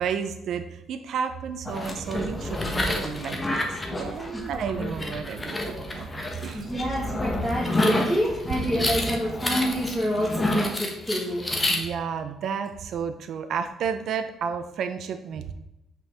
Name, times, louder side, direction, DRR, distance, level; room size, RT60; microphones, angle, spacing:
voice 1, 0.0-6.1 6.4-6.9 11.7-15.5, right 7 dB, 65° right, 8 dB, 0.7 m, -32 dB
sound 1, 1.7-11.8, left 1 dB, 20° left, 1.2 m, -29 dB
voice 2, 6.5-11.4, equal, 5° right, -6 dB, 2.0 m, -27 dB
5.5 x 4.6 x 6.2 m, 0.89 s
cardioid pair, 105°, 0 cm